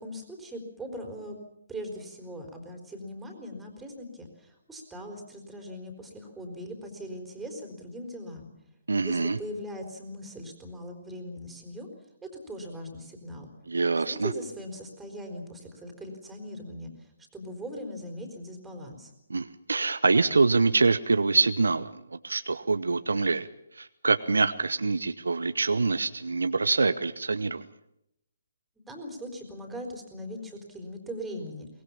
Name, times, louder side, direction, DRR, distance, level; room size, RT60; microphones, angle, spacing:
voice 1, 0.0-1.4 1.7-8.5 9.0-11.9 12.2-13.5 14.1-19.1 28.8-31.7, equal, 5° right, 3 dB, 4.2 m, -40 dB
voice 2, 8.9-9.4 13.7-14.3 19.3-23.5 23.7-27.7, right 3 dB, 70° right, 12 dB, 0.9 m, -25 dB
23.5 x 20.0 x 7.3 m, 0.80 s
figure-of-eight pair, 135°, 0 cm